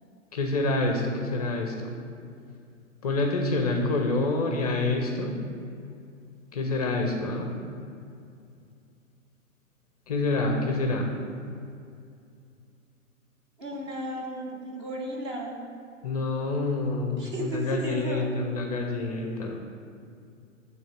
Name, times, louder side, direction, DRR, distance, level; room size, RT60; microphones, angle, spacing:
voice 1, 0.3-1.9 3.0-5.4 6.5-7.5 10.1-11.1 16.0-19.6, left 2 dB, 30° left, 2 dB, 0.5 m, -27 dB
voice 2, 13.6-15.6 17.2-18.3, right 1 dB, 20° right, -1 dB, 0.5 m, -34 dB
8.8 x 3.2 x 4.4 m, 2.5 s
figure-of-eight pair, 110°, 40 cm